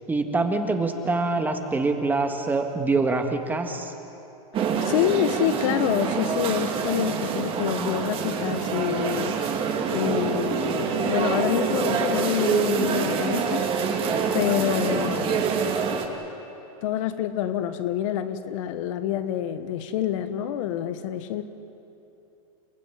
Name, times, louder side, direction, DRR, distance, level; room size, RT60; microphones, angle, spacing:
voice 1, 0.1-3.9, right 3 dB, 10° right, 5 dB, 1.7 m, -25 dB
voice 2, 4.5-9.4 9.9-13.7 14.3-15.7 16.0-16.1 16.8-21.4, left 11 dB, 55° left, 10 dB, 1.4 m, -27 dB
sound 1, 4.5-16.1, right 6 dB, 30° right, 2.4 m, -26 dB
30.0 x 15.5 x 9.7 m, 2.8 s
supercardioid pair, 145°, 19 cm